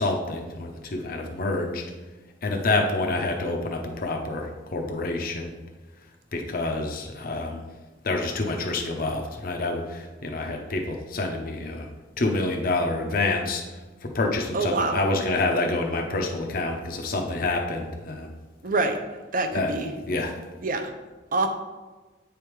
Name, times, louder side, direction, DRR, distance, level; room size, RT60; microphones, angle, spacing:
voice 1, 0.0-1.9 2.4-5.5 6.3-7.7 8.0-11.9 12.2-13.6 14.0-18.3 19.5-19.7 20.1-20.3, left 2 dB, 50° left, 3 dB, 0.7 m, -27 dB
voice 2, 14.5-15.0 18.6-19.0 19.3-19.9 20.6-20.9 21.3-21.5, right 3 dB, 45° right, 6 dB, 0.7 m, -25 dB
8.8 x 3.5 x 4.6 m, 1.2 s
head